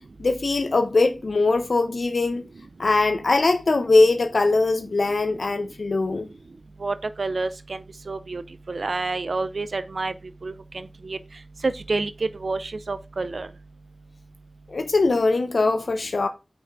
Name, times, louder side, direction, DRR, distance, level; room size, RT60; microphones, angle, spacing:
voice 1, 0.2-2.4 2.8-6.3 14.7-16.3, left 3 dB, 90° left, 0.9 m, -21 dB
voice 2, 6.8-8.4 8.7-10.1 10.4-11.2 11.6-13.5, right 3 dB, 85° right, 0.5 m, -28 dB
6.2 x 5.2 x 4.7 m
wide cardioid pair, 55°, 0 cm